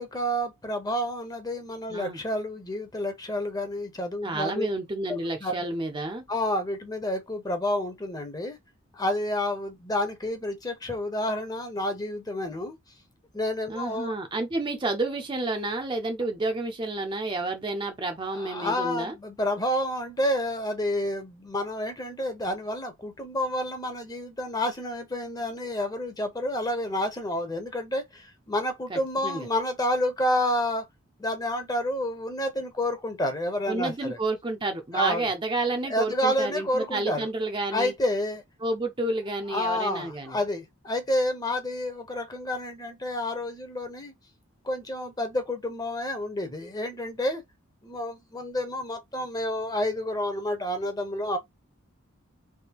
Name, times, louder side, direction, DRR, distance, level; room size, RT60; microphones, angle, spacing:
voice 1, 0.0-4.7 5.1-5.6 6.3-8.6 8.9-12.8 13.3-14.1 18.3-30.9 31.2-34.2 34.9-35.2 35.9-37.3 37.7-38.4 39.5-44.1 44.6-47.4 47.8-51.4, left 1 dB, 20° left, 0.7 m, -29 dB
voice 2, 1.9-2.2 4.2-6.2 13.7-19.1 28.9-29.5 33.7-37.9 38.6-40.4, right 2 dB, 25° right, 0.5 m, -30 dB
3.5 x 2.7 x 2.8 m
head